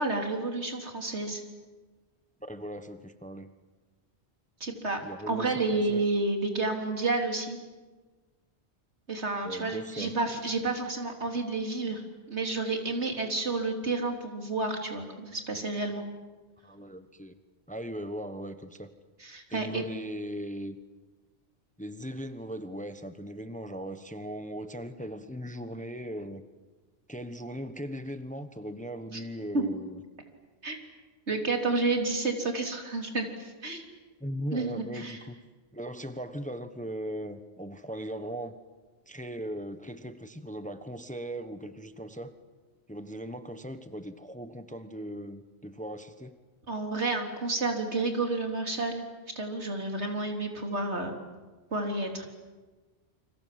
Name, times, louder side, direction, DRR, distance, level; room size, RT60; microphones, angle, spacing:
voice 1, 0.0-1.4 4.6-5.0 5.3-7.6 9.1-12.0 12.3-16.0 19.2-19.8 29.1-29.2 29.5-29.6 30.6-30.8 31.3-33.9 34.5-35.2 46.7-49.1 49.4-51.1 51.7-52.3, right 3 dB, 75° right, 3 dB, 3.8 m, -30 dB
voice 2, 2.5-3.5 5.0-6.0 9.4-10.1 16.6-17.3 17.7-18.9 19.5-20.8 21.8-26.4 27.1-30.0 34.2-35.4 35.7-38.5 39.1-42.4 42.9-46.4, equal, 5° left, 10 dB, 1.1 m, -38 dB
29.5 x 25.5 x 7.7 m, 1.3 s
omnidirectional pair, 1.1 m